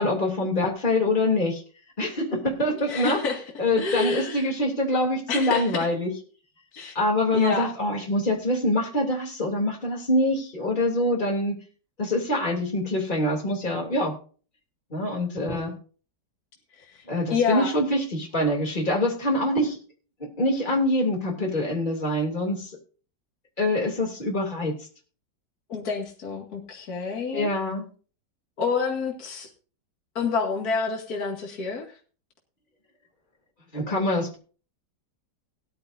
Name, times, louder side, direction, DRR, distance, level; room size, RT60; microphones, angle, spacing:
voice 1, 0.0-1.6 2.0-3.2 3.6-6.1 6.9-11.5 12.0-14.2 14.9-15.7 17.1-19.8 20.2-22.7 23.6-24.8 27.3-27.9 33.7-34.4, left 1 dB, 25° left, 1 dB, 3.2 m, -25 dB
voice 2, 2.9-3.4 3.8-4.5 5.3-5.9 6.7-6.9 7.3-7.7 16.9-17.0 17.3-17.7 25.7-27.5 28.6-29.5 30.2-32.0, left 4 dB, 60° left, 0 dB, 2.6 m, -28 dB
18.5 x 11.5 x 2.7 m, 0.39 s
omnidirectional pair, 1.8 m